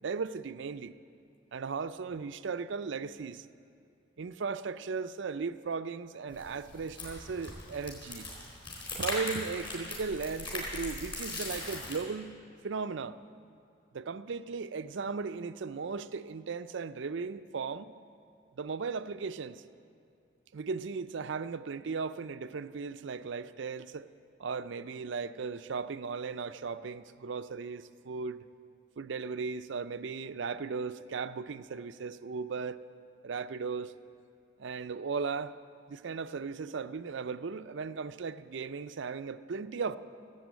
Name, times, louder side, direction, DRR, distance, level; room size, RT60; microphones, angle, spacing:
voice 1, 0.0-1.0 1.5-3.5 4.2-8.3 9.0-12.3 12.6-13.2 13.9-17.9 18.6-19.6 20.5-24.1 24.4-28.4 29.0-32.8 33.2-33.9 34.6-35.6 35.9-40.0, right 5 dB, 65° right, 0.4 m, -37 dB
sound 1, 6.3-12.0, left 2 dB, 25° left, 4.0 m, -40 dB
16.5 x 8.3 x 8.2 m
head